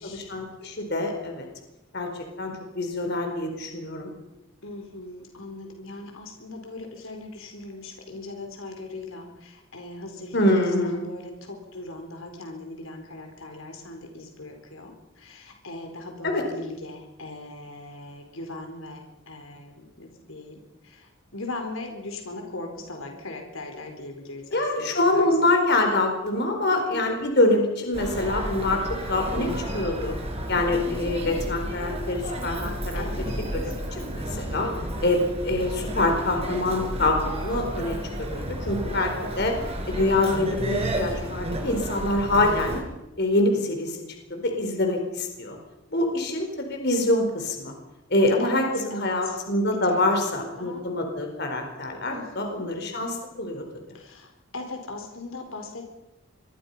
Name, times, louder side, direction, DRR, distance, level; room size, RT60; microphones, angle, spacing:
voice 1, 0.0-1.5 1.9-4.1 10.3-11.1 16.2-16.4 24.5-30.1 30.5-33.0 33.6-34.7 35.0-39.5 39.9-42.8 43.2-44.0 44.3-45.6 45.9-47.7 48.1-53.6, left 2 dB, 55° left, 3 dB, 4.5 m, -25 dB
voice 2, 4.6-25.5 26.7-27.1 32.9-33.8 48.4-48.6 48.9-49.4 49.8-50.9 52.1-52.7 53.9-55.9, left 2 dB, 85° left, 3 dB, 4.4 m, -39 dB
Human voice, 27.9-42.8, right 1 dB, 30° right, 4.6 m, -32 dB
26.5 x 22.0 x 5.7 m, 0.95 s
head